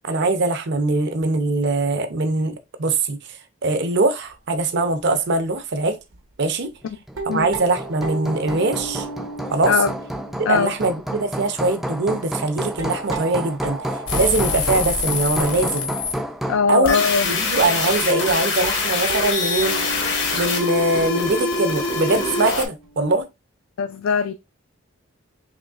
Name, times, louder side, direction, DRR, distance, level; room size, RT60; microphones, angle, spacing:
voice 1, 0.0-3.2 3.6-6.0 6.4-6.7 7.3-9.1 9.5-9.7 10.4-13.8 14.1-15.9 16.7-19.8 20.3-23.2, right 2 dB, 55° right, 0.6 m, -22 dB
sound 1, 4.3-4.6 5.0-5.1 5.5-5.6 6.1-6.2 6.9-16.9 17.5-17.6 17.8-17.9 18.3-23.2, right 3 dB, 80° right, 0.9 m, -36 dB
Hammer, 7.1-16.7, right 1 dB, ahead, 0.3 m, -30 dB
sound 2, 14.1-16.1 16.8-22.7, left 4 dB, 60° left, 1.0 m, -24 dB
voice 2, 16.5-17.3 23.8-24.3, left 5 dB, 75° left, 0.3 m, -20 dB
5.0 x 3.1 x 2.4 m
head